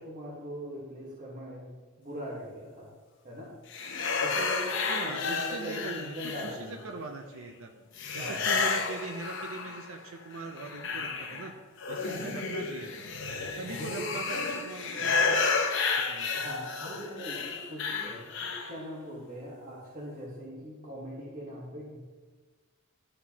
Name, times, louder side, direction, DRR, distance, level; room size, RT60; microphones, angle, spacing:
voice 1, 0.0-2.9 3.2-3.5 4.2-7.0 8.2-8.5 13.8-14.1 15.0-15.4 16.3-22.0, equal, 40° right, -6 dB, 1.3 m, -41 dB
sound 1, 3.7-6.9 8.0-10.0 10.3-18.8, left 4 dB, 60° left, 0.8 m, -31 dB
voice 2, 4.9-7.7 8.1-11.5 11.9-13.1 13.5-15.6 16.1-16.3, right 3 dB, 70° right, 4 dB, 0.6 m, -41 dB
12.5 x 4.4 x 2.8 m, 1.4 s
head